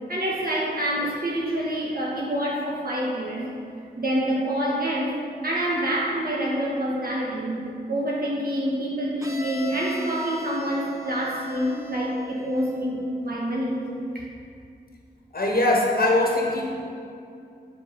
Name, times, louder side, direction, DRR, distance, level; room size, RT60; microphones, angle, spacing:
voice 1, 0.1-3.5 4.0-7.6 7.9-13.8 14.1-14.3, equal, 60° right, -4 dB, 1.6 m, -27 dB
Bowed string instrument, 9.2-13.0, equal, 20° right, 1.1 m, -40 dB
voice 2, 15.3-16.7, left 2 dB, 60° left, -1 dB, 1.3 m, -21 dB
7.8 x 5.8 x 5.3 m, 2.5 s
wide cardioid pair, 60°, 17 cm